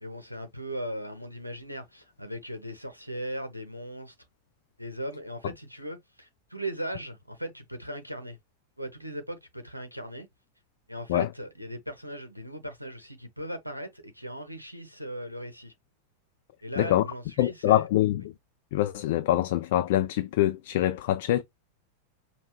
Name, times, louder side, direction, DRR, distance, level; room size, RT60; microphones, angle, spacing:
voice 1, 0.0-4.1 4.8-8.4 8.8-10.3 10.9-15.7 16.6-17.8, right 1 dB, 90° right, 0.8 m, -38 dB
voice 2, 17.4-18.3 18.7-21.4, left 14 dB, 50° left, 0.4 m, -24 dB
5.3 x 2.3 x 3.0 m
figure-of-eight pair, 90°, 0 cm